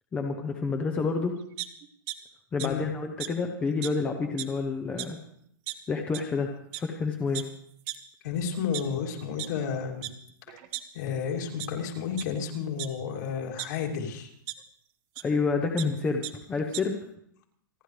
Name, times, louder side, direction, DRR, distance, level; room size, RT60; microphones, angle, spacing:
voice 1, 0.1-1.4 2.5-5.2 5.9-7.4 15.2-16.2 16.5-17.0, left 4 dB, 10° left, 3 dB, 0.7 m, -29 dB
sound 1, 1.6-2.2 2.6-2.7 3.2-3.3 3.8-3.9 4.2-4.6 5.0-5.1 5.7-5.8 6.1-6.3 6.7-6.8 7.3-7.4 7.9-8.0 8.5-9.5 10.0-10.1 10.5-11.2 11.6-11.7 12.1-12.3 12.8-13.7 14.5-14.6 15.2-15.3 15.5-15.9 16.2-16.3 16.6-16.8, right 17 dB, 30° right, 0.8 m, -36 dB
voice 2, 2.6-2.9 8.2-10.1 10.5-10.6 10.9-14.3, left 7 dB, 55° left, 0 dB, 3.0 m, -32 dB
28.0 x 11.0 x 3.3 m, 0.67 s
supercardioid pair, 175°, 11 cm